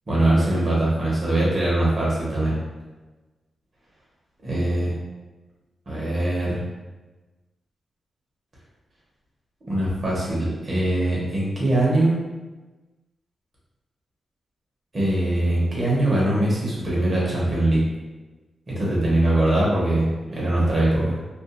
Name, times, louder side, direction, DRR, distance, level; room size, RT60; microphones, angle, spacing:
voice 1, 0.1-2.6 4.4-4.9 5.9-6.6 9.6-12.2 14.9-17.8 18.7-21.2, right 1 dB, 50° right, -6 dB, 1.1 m, -22 dB
2.6 x 2.6 x 2.4 m, 1.2 s
cardioid pair, 65°, 0 cm